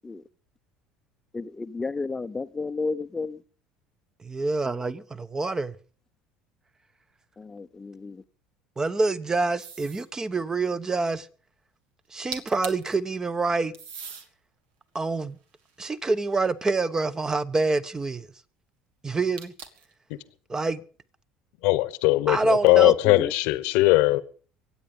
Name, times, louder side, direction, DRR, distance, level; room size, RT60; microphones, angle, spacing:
voice 1, 1.3-3.4 7.4-8.2 23.0-23.3, left 3 dB, 20° left, 0.7 m, -32 dB
voice 2, 4.2-5.7 8.8-11.3 12.1-13.7 14.9-15.4 15.8-18.3 19.0-19.5 20.5-20.8 22.3-22.9, right 3 dB, 20° right, 1.1 m, -26 dB
sound 1, 9.6-10.1 12.0-12.1 12.3-12.9 13.7-14.3 14.9-16.4 19.4-19.9, right 6 dB, 70° right, 2.3 m, -40 dB
voice 3, 21.6-24.2, left 19 dB, 75° left, 1.0 m, -20 dB
23.5 x 8.9 x 5.4 m
supercardioid pair, 85°, 3 cm